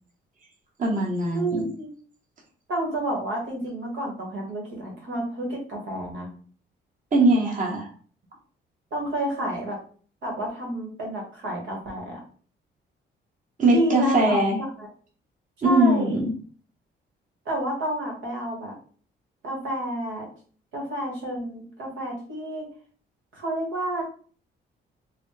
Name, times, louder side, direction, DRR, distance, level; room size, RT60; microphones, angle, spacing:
voice 1, 0.8-1.7 7.1-7.9 13.6-14.6 15.6-16.3, right 1 dB, 40° right, -2 dB, 1.2 m, -21 dB
voice 2, 1.3-1.9 2.7-6.3 8.9-9.8 10.2-12.2 13.7-14.4 14.8-14.9 15.6-16.1 17.5-18.7 19.4-20.3 20.7-22.7 23.3-24.0, right 1 dB, 80° right, -1 dB, 1.6 m, -29 dB
4.0 x 2.3 x 3.2 m, 0.42 s
cardioid pair, 90°, 20 cm